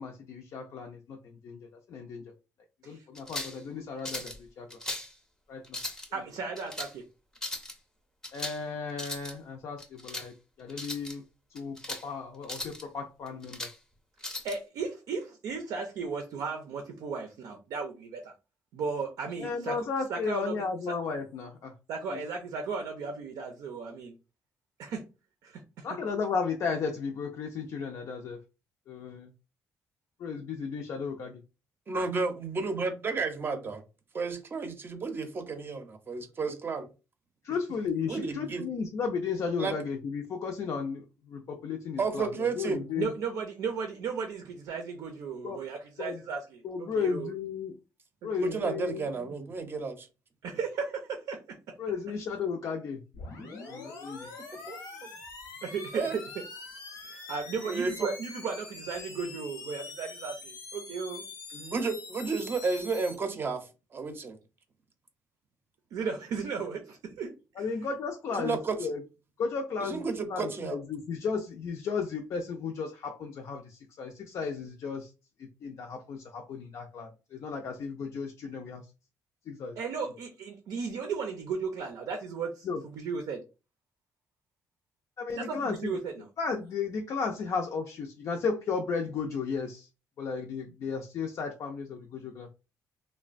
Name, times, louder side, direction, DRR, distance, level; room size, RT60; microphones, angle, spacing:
voice 1, 0.0-1.6 1.9-2.3 2.9-4.7 5.5-5.8 8.3-11.2 11.5-13.7 19.4-21.7 25.8-28.4 28.9-29.3 30.2-31.4 37.4-43.1 45.4-45.6 46.0-46.2 46.6-47.7 48.2-49.3 51.8-53.0 53.7-54.3 67.6-69.0 69.4-75.1 75.4-78.8 79.5-79.8 82.6-82.8 85.2-86.0 86.4-89.9 90.2-92.5, left 5 dB, 60° left, 2 dB, 0.4 m, -34 dB
sound 1, 3.1-3.6 4.0-4.4 4.7-5.1 5.6-6.1 6.6-6.9 7.4-7.7 8.2-8.6 8.9-9.3 9.8-10.3 10.7-11.1 11.6-12.0 12.4-12.8 13.3-13.8 14.2-14.6, left 1 dB, 10° left, 0.5 m, -38 dB
voice 2, 6.1-7.1 14.2-18.3 18.7-19.8 20.1-20.9 21.9-24.2 24.8-25.0 25.4-25.9 43.0-47.3 48.2-48.7 50.4-51.6 55.6-56.2 57.0-61.2 65.9-67.7 79.8-83.4 85.3-86.3, right 5 dB, 85° right, 4 dB, 0.5 m, -35 dB
voice 3, 31.9-33.8 34.1-36.9 38.1-38.7 39.6-39.8 42.0-42.9 48.4-50.1 54.7-54.8 55.9-56.2 57.6-58.1 61.5-64.4 68.3-68.9 69.8-70.8, right 4 dB, 35° right, 7 dB, 0.5 m, -32 dB
sound 2, 53.1-63.1, left 4 dB, 85° left, 0.9 m, -44 dB
3.0 x 2.1 x 2.4 m, 0.30 s
cardioid pair, 120°, 6 cm